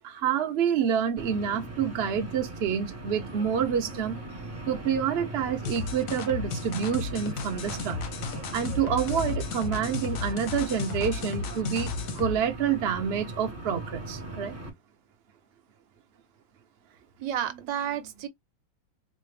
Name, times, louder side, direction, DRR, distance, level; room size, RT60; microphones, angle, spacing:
voice 1, 0.0-4.2 4.7-8.0 8.5-14.5, right 7 dB, 45° right, 0.9 m, -28 dB
sound 1, 1.2-14.7, right 2 dB, 15° right, 0.6 m, -39 dB
sound 2, 5.6-12.4, left 5 dB, 65° left, 0.9 m, -34 dB
voice 2, 17.2-18.3, right 10 dB, 80° right, 1.4 m, -31 dB
4.2 x 2.5 x 3.2 m
omnidirectional pair, 2.0 m